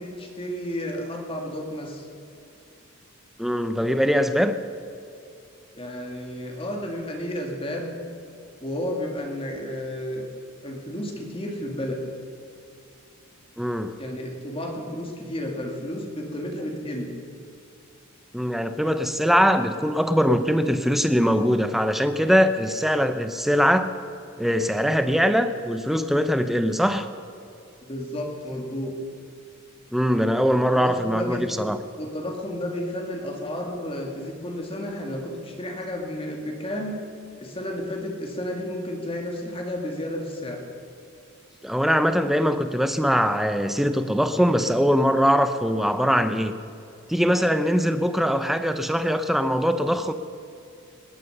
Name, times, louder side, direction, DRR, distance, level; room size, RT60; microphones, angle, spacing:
voice 1, 0.0-2.1 5.7-7.9 8.6-10.3 10.6-12.0 14.0-17.1 27.8-28.9 30.7-31.4 32.0-37.0 37.4-40.6, left 1 dB, 25° left, 1 dB, 2.0 m, -32 dB
voice 2, 3.4-4.6 13.6-14.0 18.3-23.9 24.4-27.1 29.9-31.8 41.6-46.5 47.1-50.1, equal, ahead, 9 dB, 0.6 m, -22 dB
19.5 x 11.0 x 6.7 m, 2.5 s
head